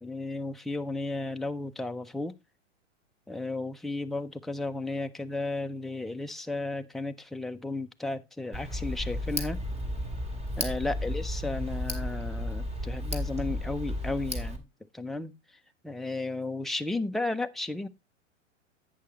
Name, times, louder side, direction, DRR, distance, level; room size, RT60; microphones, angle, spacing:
voice 1, 0.0-2.3 3.3-9.6 10.6-14.6 14.9-15.3 15.8-17.9, left 2 dB, ahead, 0.5 m, -34 dB
Tick, 8.5-14.6, left 1 dB, 15° right, 2.4 m, -33 dB
11.0 x 8.7 x 3.0 m
hypercardioid pair, 105°, 38 cm